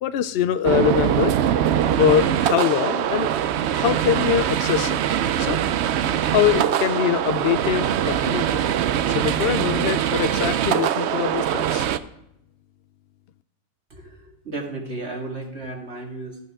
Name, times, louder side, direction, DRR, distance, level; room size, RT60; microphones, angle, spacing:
voice 1, 0.0-1.3 2.0-3.3 3.7-5.0 5.4-5.6 6.3-8.6 9.1-11.9, left 9 dB, 75° left, 12 dB, 0.5 m, -23 dB
sound 1, 0.6-12.0, right 10 dB, 70° right, 0.6 m, -22 dB
voice 2, 13.9-16.4, right 2 dB, 45° right, 0 dB, 2.3 m, -34 dB
13.0 x 10.5 x 3.6 m, 0.80 s
omnidirectional pair, 1.6 m